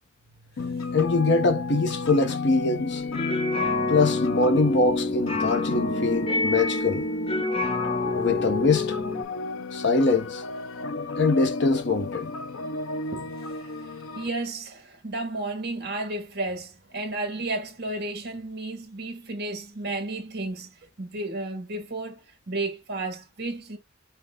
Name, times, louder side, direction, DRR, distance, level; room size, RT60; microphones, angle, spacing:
sound 1, 0.6-14.3, left 3 dB, 90° left, 0.6 m, -32 dB
voice 1, 0.9-3.0 3.9-7.0 8.2-9.0 9.7-10.4 11.2-12.3, left 3 dB, 60° left, 0.9 m, -23 dB
sound 2, 2.9-9.2, left 3 dB, 30° left, 0.8 m, -29 dB
voice 2, 14.1-23.8, right 2 dB, 55° right, 1.7 m, -33 dB
5.7 x 2.3 x 3.6 m
head